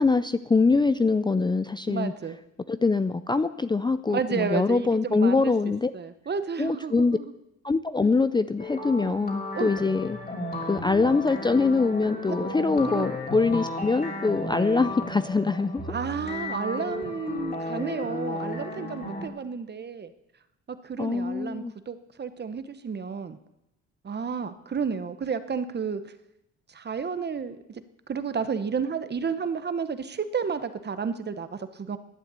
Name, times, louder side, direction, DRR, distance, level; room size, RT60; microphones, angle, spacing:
voice 1, 0.0-2.1 2.7-5.9 6.6-7.2 7.6-10.2 10.6-15.9 21.0-21.7, left 4 dB, 15° left, 12 dB, 0.5 m, -24 dB
voice 2, 1.9-2.4 4.1-5.5 5.9-7.3 9.5-9.7 12.3-13.1 15.9-20.1 20.8-23.4 24.0-26.1 26.7-27.8 28.1-32.0, right 6 dB, 35° right, 11 dB, 1.0 m, -31 dB
sound 1, 8.6-19.3, left 1 dB, 30° left, 3.1 m, -34 dB
11.0 x 9.1 x 8.2 m, 0.89 s
cardioid pair, 90°, 30 cm